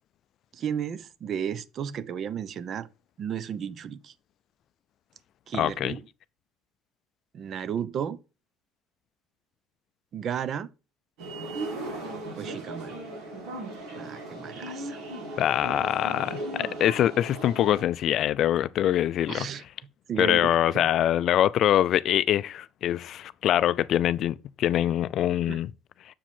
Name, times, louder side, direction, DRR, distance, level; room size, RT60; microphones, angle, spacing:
voice 1, 0.5-2.9 3.2-4.1 5.5-6.0 7.3-8.2 10.1-10.7 12.4-13.0 13.9-15.0 19.3-19.6 20.1-20.9 25.5-25.6, right 8 dB, 45° right, 0.6 m, -33 dB
voice 2, 5.5-5.9 15.4-19.5 20.2-25.7, left 11 dB, 55° left, 0.3 m, -24 dB
sound 1, 11.2-17.8, right 2 dB, 80° right, 3.8 m, -37 dB
7.0 x 4.9 x 3.6 m
cardioid pair, 120°, 0 cm